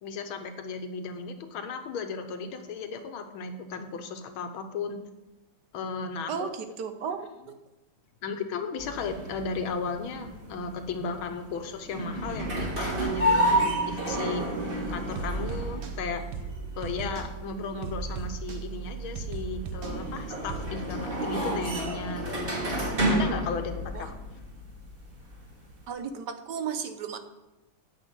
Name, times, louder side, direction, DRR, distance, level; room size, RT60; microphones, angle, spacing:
voice 1, 0.0-5.0 5.7-6.5 8.2-16.5 16.8-22.5 23.1-24.2, left 4 dB, 90° left, 7 dB, 1.9 m, -35 dB
voice 2, 6.3-7.3 23.9-24.1 25.9-27.2, right 7 dB, 65° right, 7 dB, 1.3 m, -34 dB
sound 1, 8.8-25.9, equal, 30° right, 2.1 m, -31 dB
sound 2, 14.7-20.6, right 5 dB, 80° right, 1.9 m, -37 dB
9.5 x 6.2 x 8.1 m, 1.0 s
omnidirectional pair, 2.2 m